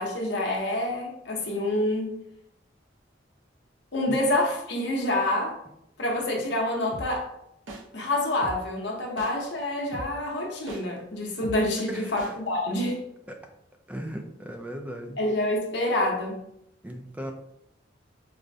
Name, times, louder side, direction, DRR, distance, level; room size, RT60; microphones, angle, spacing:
voice 1, 0.0-2.2 3.9-5.6 6.0-7.3 7.9-13.0 15.2-16.4, left 1 dB, 65° left, 0 dB, 0.8 m, -27 dB
sound 1, 6.9-7.1 7.7-7.8 8.4-8.6 9.2-9.3 9.9-10.1 10.7-10.8 11.4-11.6 12.2-12.3, right 1 dB, 75° right, 0.8 m, -37 dB
voice 2, 11.9-12.4 13.3-13.4 13.9-15.2 16.8-17.3, equal, 10° right, 3 dB, 0.4 m, -37 dB
4.8 x 2.1 x 2.6 m, 0.77 s
head